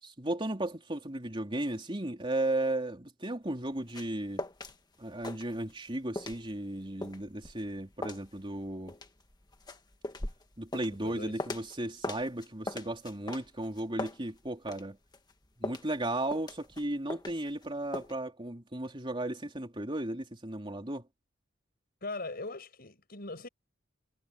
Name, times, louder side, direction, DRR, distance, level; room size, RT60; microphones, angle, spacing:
voice 1, 0.0-4.4 5.0-8.9 10.6-15.0 15.6-21.0, right 1 dB, 25° right, 3.5 m, -35 dB
sound 1, 3.5-4.8 5.0-5.9 6.2-11.8 12.0-14.8 15.1-17.6 17.9-18.1, left 2 dB, 20° left, 1.6 m, -40 dB
voice 2, 11.0-11.4 22.0-23.5, left 2 dB, 50° left, 6.4 m, -40 dB
head